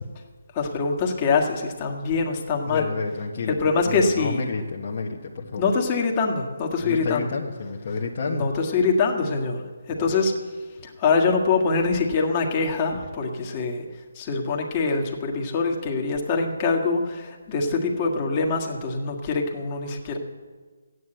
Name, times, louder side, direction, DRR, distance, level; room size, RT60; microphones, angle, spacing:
voice 1, 0.5-2.9 3.6-4.5 5.6-7.3 8.3-9.6 9.9-10.3 10.8-13.9 14.2-20.2, left 4 dB, 25° left, 1 dB, 1.8 m, -24 dB
voice 2, 2.7-5.7 6.8-8.5 9.9-10.2, left 4 dB, 45° left, -1 dB, 1.3 m, -30 dB
14.0 x 9.6 x 7.9 m, 1.5 s
hypercardioid pair, 160°, 0 cm